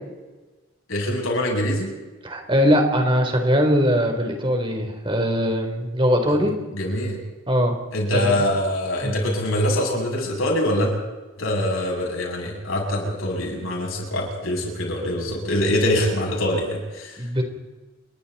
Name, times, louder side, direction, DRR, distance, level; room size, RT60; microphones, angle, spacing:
voice 1, 0.9-1.9 6.3-6.4 6.7-7.2 7.9-11.0 11.4-17.2, left 1 dB, 90° left, -1 dB, 7.8 m, -24 dB
voice 2, 2.2-6.5 7.5-7.8 8.1-8.4 9.0-9.1 17.2-17.4, equal, 25° right, 3 dB, 3.8 m, -21 dB
29.5 x 22.5 x 4.3 m, 1.2 s
head